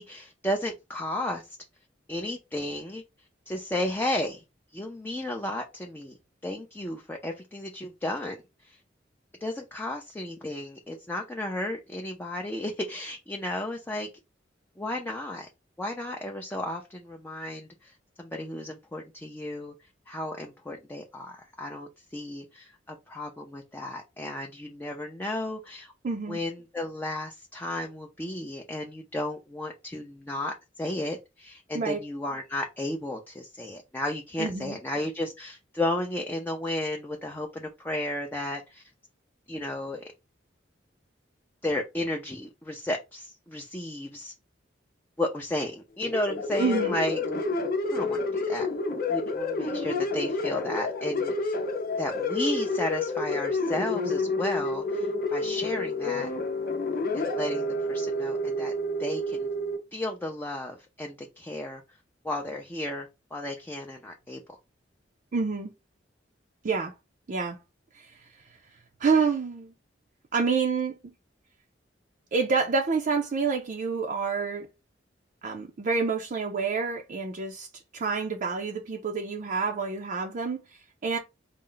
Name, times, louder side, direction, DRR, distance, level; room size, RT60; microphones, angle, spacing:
voice 1, 0.0-1.6 2.1-3.0 3.5-4.4 4.7-6.2 6.4-8.8 9.4-14.1 14.8-15.5 15.8-17.9 18.2-19.7 20.1-25.9 26.3-38.8 39.5-40.0 41.6-44.3 45.2-47.2 47.9-48.7 49.1-51.6 52.0-56.3 57.1-58.7 59.0-59.5 59.9-61.8 62.2-64.4, left 1 dB, 10° left, 0.4 m, -33 dB
voice 2, 26.0-26.4 31.7-32.0 34.4-34.8 46.6-47.0 65.3-65.7 66.6-66.9 67.3-67.6 67.9-68.3 69.0-69.7 70.3-71.0 72.3-74.7 75.4-81.2, right 4 dB, 45° right, 0.4 m, -28 dB
sound 1, 46.0-59.8, left 2 dB, 55° left, 0.7 m, -29 dB
4.2 x 2.0 x 3.8 m
head